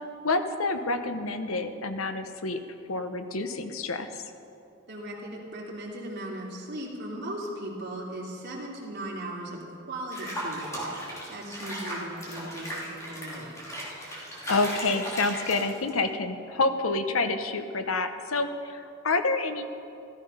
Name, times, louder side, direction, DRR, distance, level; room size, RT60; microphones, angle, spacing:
voice 1, 0.2-2.6 2.9-4.1 14.5-19.6, left 3 dB, 75° left, 8 dB, 1.0 m, -28 dB
voice 2, 4.9-10.6 11.3-13.5, right 1 dB, 55° right, -3 dB, 2.9 m, -37 dB
Water / Bathtub (filling or washing), 10.1-16.0, right 1 dB, 15° left, 2.9 m, -36 dB
14.5 x 14.0 x 5.5 m, 2.6 s
head